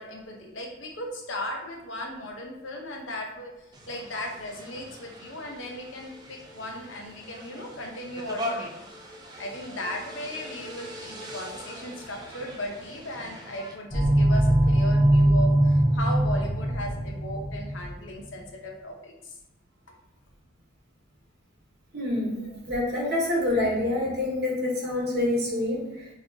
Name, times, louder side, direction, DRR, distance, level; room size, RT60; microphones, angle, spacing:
voice 1, 0.0-3.5 3.9-8.9 9.4-19.3 22.4-22.6, left 1 dB, 80° left, 1 dB, 0.8 m, -37 dB
sound 1, 3.7-13.7, equal, 20° right, 0.5 m, -41 dB
sound 2, 13.9-17.9, right 1 dB, 45° left, 1.2 m, -21 dB
voice 2, 21.9-22.4 22.7-26.1, left 1 dB, 50° right, -4 dB, 1.4 m, -26 dB
4.3 x 3.0 x 2.9 m, 0.94 s
head